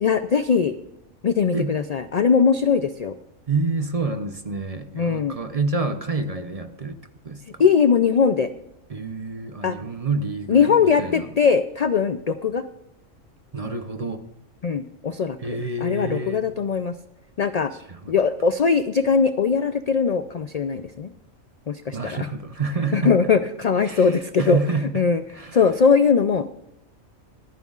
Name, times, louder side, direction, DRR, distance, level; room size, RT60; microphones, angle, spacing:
voice 1, 0.0-0.8 1.2-3.2 4.9-5.4 7.6-8.5 9.6-9.8 10.5-12.6 14.6-16.9 17.4-17.7 18.1-21.1 21.7-22.2 22.9-24.6 24.9-25.2 25.5-26.5, left 6 dB, 70° left, 10 dB, 0.3 m, -20 dB
voice 2, 3.5-7.0 7.2-7.6 8.9-11.3 13.5-14.2 15.4-16.4 17.7-18.1 21.9-23.1 23.8-25.0 25.3-25.6, right 3 dB, 35° right, 9 dB, 0.7 m, -28 dB
25.0 x 9.3 x 2.4 m, 0.89 s
omnidirectional pair, 1.3 m